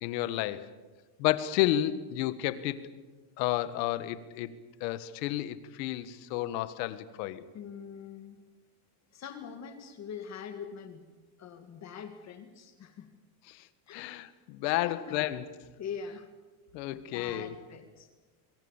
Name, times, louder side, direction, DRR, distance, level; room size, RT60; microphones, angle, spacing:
voice 1, 0.0-0.7 1.2-2.8 3.4-4.5 4.8-7.5 13.5-13.6 13.9-15.4 16.7-17.5, left 14 dB, 80° left, 13 dB, 1.7 m, -31 dB
voice 2, 7.5-8.4 9.1-11.1 11.4-13.1 13.9-14.2 14.6-15.2 15.8-16.3 16.9-18.1, left 7 dB, 35° left, 7 dB, 1.9 m, -43 dB
27.0 x 22.5 x 7.4 m, 1.2 s
cardioid pair, 155°, 49 cm